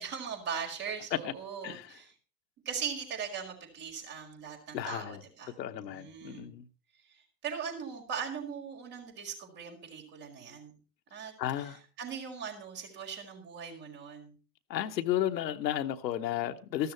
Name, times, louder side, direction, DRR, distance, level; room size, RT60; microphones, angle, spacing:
voice 1, 0.0-2.1 2.7-6.5 7.1-10.7 11.1-11.3 11.6-14.4, right 7 dB, 70° right, 5.2 m, -40 dB
voice 2, 4.7-5.2 5.6-6.6 11.4-11.8 14.7-16.9, left 12 dB, 85° left, 1.0 m, -33 dB
13.5 x 12.5 x 4.4 m
hypercardioid pair, 65°, 50 cm